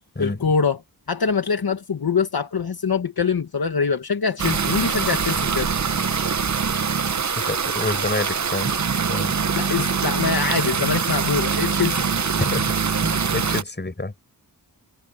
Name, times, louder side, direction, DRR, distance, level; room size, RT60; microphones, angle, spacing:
voice 1, 0.2-0.8 1.1-5.7 9.5-12.2, left 5 dB, 65° left, 1.8 m, -24 dB
sound 1, 4.4-13.6, right 6 dB, 45° right, 0.9 m, -23 dB
voice 2, 7.4-8.7 9.1-9.3 12.4-12.7 13.0-14.1, left 2 dB, 25° left, 6.4 m, -28 dB
wide cardioid pair, 105°, 40 cm